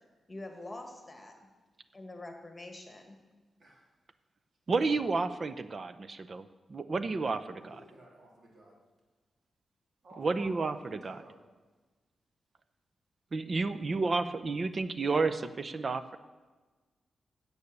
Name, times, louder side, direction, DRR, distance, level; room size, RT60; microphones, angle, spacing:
voice 1, 0.3-1.3 1.9-3.2, left 2 dB, 25° left, 4 dB, 1.8 m, -45 dB
voice 2, 4.7-6.4 6.7-7.8 10.2-11.2 13.3-16.2, right 3 dB, 45° right, 13 dB, 0.6 m, -31 dB
voice 3, 7.4-8.8 10.0-11.4, right 1 dB, 60° right, -1 dB, 3.0 m, -54 dB
9.8 x 8.1 x 6.7 m, 1.3 s
cardioid pair, 80°, 0 cm